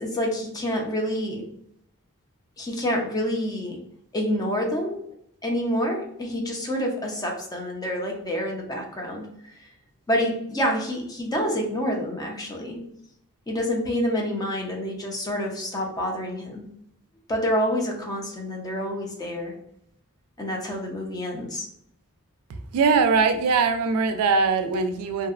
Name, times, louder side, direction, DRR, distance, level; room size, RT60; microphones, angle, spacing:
voice 1, 0.0-1.4 2.6-3.8 4.1-5.0 5.4-9.3 9.6-9.7 10.1-12.8 13.5-16.6 17.3-19.5 20.4-21.7, equal, 15° left, 1 dB, 0.4 m, -27 dB
voice 2, 22.7-25.3, right 4 dB, 75° right, 8 dB, 0.3 m, -21 dB
2.6 x 2.1 x 2.4 m, 0.70 s
head